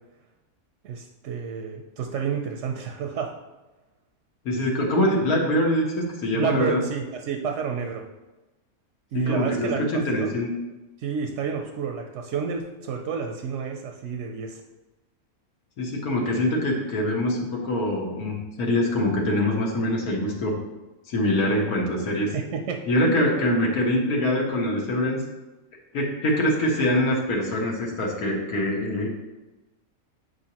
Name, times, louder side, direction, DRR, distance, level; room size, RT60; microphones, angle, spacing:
voice 1, 0.8-3.4 6.3-8.1 9.1-10.4 11.0-14.6 22.3-22.9, right 6 dB, 65° right, 3 dB, 0.8 m, -30 dB
voice 2, 4.4-6.8 9.1-10.5 15.8-20.6 21.1-22.3 22.9-25.2 25.9-29.1, left 1 dB, 80° left, -2 dB, 1.6 m, -24 dB
8.1 x 4.8 x 2.9 m, 1.1 s
omnidirectional pair, 1.6 m